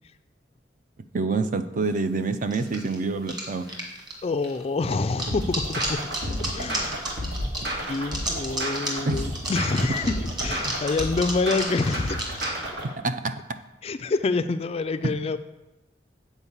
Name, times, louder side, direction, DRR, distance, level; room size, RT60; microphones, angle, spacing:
voice 1, 1.1-3.7 9.0-9.3 13.0-13.6, right 3 dB, 45° right, 10 dB, 0.5 m, -27 dB
sound 1, 2.5-12.5, right 1 dB, 25° right, 1.7 m, -32 dB
voice 2, 4.2-6.0 6.5-7.0 7.9-12.2 13.8-15.4, left 3 dB, 35° left, 12 dB, 0.3 m, -27 dB
sound 2, 5.3-12.9, equal, 70° right, 1.7 m, -32 dB
8.1 x 4.5 x 7.2 m, 0.96 s
head